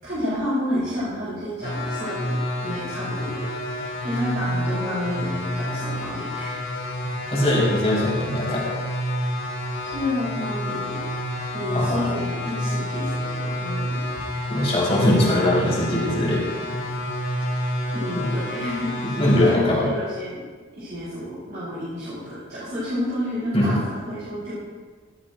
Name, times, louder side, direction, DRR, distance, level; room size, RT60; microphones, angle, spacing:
voice 1, 0.0-3.5 4.0-6.5 9.9-11.0 11.5-14.0 17.9-18.9 19.4-20.4 20.7-24.5, left 1 dB, 50° right, -11 dB, 4.5 m, -30 dB
sound 1, 1.6-19.5, equal, 50° left, 3.2 m, -29 dB
voice 2, 7.3-8.7 11.7-12.2 14.5-16.4 16.9-17.0 19.2-19.8 23.5-23.7, left 1 dB, 30° left, -5 dB, 4.3 m, -21 dB
17.5 x 13.5 x 2.6 m, 1.4 s
head